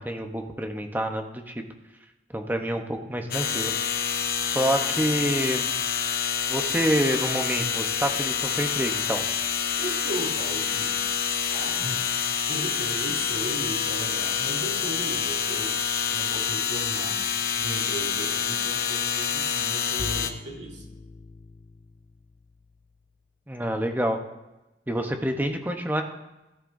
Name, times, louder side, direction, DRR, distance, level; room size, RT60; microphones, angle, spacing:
voice 1, 0.0-1.6 2.3-3.7 4.4-5.7 6.5-9.2 23.5-24.2 24.9-26.0, right 1 dB, 10° right, 4 dB, 0.9 m, -27 dB
sound 1, 3.3-20.3, left 7 dB, 55° left, 0.8 m, -27 dB
voice 2, 9.8-12.0 12.5-15.7 16.1-17.2 17.6-20.9, right 1 dB, 65° right, -2 dB, 2.9 m, -37 dB
Bowed string instrument, 20.0-23.0, left 3 dB, 25° left, 0.3 m, -41 dB
17.5 x 10.5 x 2.7 m, 1.0 s
head